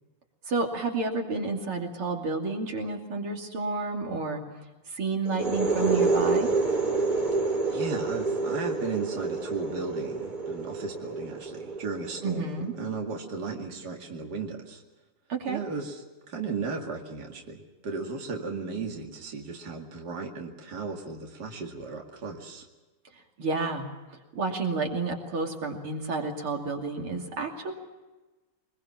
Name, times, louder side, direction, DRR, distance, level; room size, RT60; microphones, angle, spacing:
voice 1, 0.5-4.4 4.9-6.5 12.2-12.7 15.3-15.6 23.4-23.9 24.3-27.7, right 3 dB, 85° right, 2 dB, 3.7 m, -30 dB
sound 1, 5.2-12.8, right 3 dB, 20° right, 2.5 m, -28 dB
voice 2, 7.7-14.8 15.5-22.7, right 4 dB, 50° right, 1 dB, 2.7 m, -35 dB
23.5 x 21.5 x 7.3 m, 1.2 s
omnidirectional pair, 2.3 m